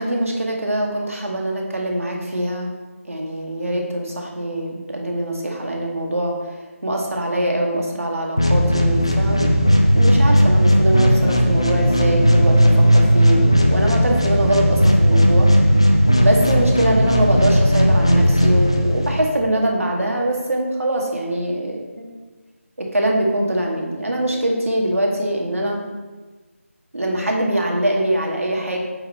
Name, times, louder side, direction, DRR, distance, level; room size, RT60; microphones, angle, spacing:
voice 1, 0.0-2.7 3.1-6.3 6.8-9.5 9.9-15.5 16.2-22.1 22.8-25.8 26.9-28.8, right 1 dB, 70° right, 0 dB, 1.8 m, -23 dB
sound 1, 8.4-19.3, equal, 20° left, 0.4 m, -15 dB
8.7 x 4.0 x 4.3 m, 1.3 s
figure-of-eight pair, 180°, 8 cm